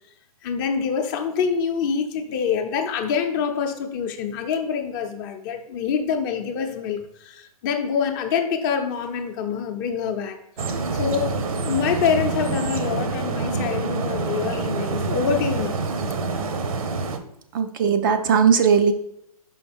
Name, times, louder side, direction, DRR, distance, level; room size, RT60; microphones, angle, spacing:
voice 1, 0.4-11.4 11.6-15.8, left 6 dB, 30° left, 5 dB, 0.7 m, -26 dB
sound 1, 10.6-17.2, right 4 dB, 65° right, 0.8 m, -26 dB
voice 2, 17.5-18.9, right 6 dB, 35° right, 8 dB, 0.4 m, -18 dB
5.5 x 5.2 x 3.5 m, 0.79 s
hypercardioid pair, 135°, 19 cm